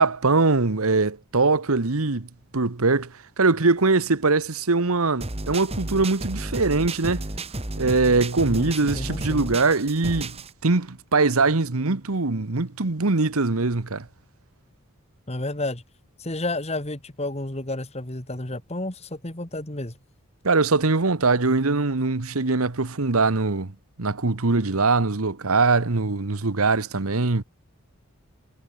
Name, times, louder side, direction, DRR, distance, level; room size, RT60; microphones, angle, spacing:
voice 1, 0.0-2.3 2.5-7.2 7.8-10.4 10.6-14.0 20.4-23.7 24.0-27.4, right 3 dB, 80° right, 1.3 m, -22 dB
sound 1, 5.2-10.5, right 1 dB, 25° right, 2.4 m, -32 dB
voice 2, 8.5-9.5 15.3-15.8 16.2-20.0, left 2 dB, 30° left, 2.1 m, -31 dB
head